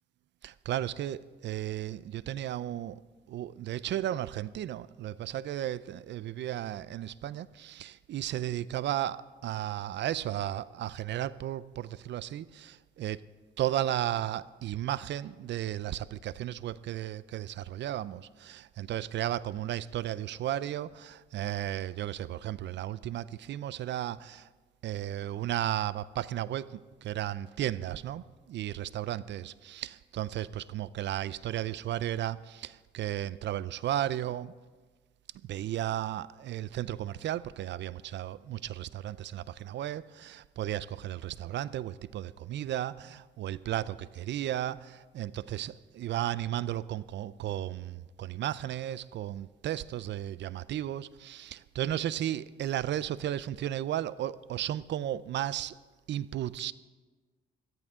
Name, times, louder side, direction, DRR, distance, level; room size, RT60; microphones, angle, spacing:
voice 1, 0.4-3.0 3.3-13.2 13.6-24.5 24.8-34.5 35.5-55.8 56.1-56.7, right 12 dB, 65° right, 0.5 m, -34 dB
18.5 x 13.5 x 3.7 m
cardioid pair, 90°, 20 cm